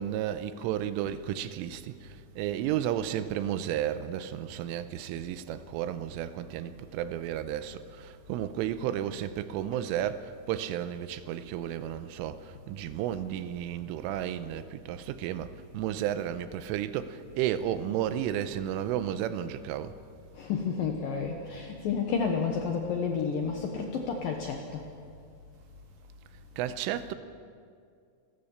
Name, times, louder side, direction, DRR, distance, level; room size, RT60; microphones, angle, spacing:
voice 1, 0.0-20.0 26.6-27.1, right 11 dB, 85° right, 3.3 m, -33 dB
voice 2, 20.3-24.8, left 5 dB, 70° left, 2.1 m, -31 dB
28.5 x 13.5 x 7.2 m
omnidirectional pair, 5.7 m